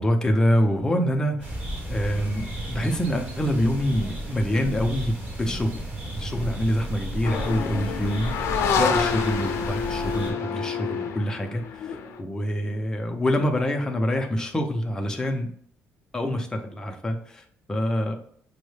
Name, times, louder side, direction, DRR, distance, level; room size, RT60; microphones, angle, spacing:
voice 1, 0.0-1.6 1.9-5.8 6.2-8.3 8.8-15.5 16.1-18.1, equal, 15° left, 3 dB, 0.5 m, -26 dB
sound 1, 1.4-10.3, right 1 dB, 35° right, 1.3 m, -33 dB
sound 2, 7.2-12.2, left 6 dB, 70° left, 0.5 m, -27 dB
6.2 x 2.1 x 3.2 m, 0.63 s
cardioid pair, 160°, 5 cm